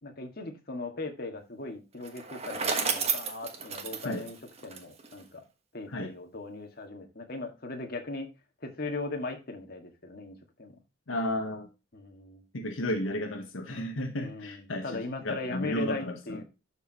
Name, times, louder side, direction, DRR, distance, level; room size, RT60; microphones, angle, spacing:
voice 1, 0.0-4.4 4.6-5.4 5.7-8.3 8.6-10.8 11.9-12.4 14.2-16.4, left 2 dB, 50° left, 1.9 m, -39 dB
Bicycle, 2.0-5.2, right 5 dB, 30° right, 1.3 m, -32 dB
voice 2, 11.1-11.7 12.5-16.4, left 1 dB, 85° left, 1.1 m, -33 dB
12.0 x 4.8 x 2.9 m
head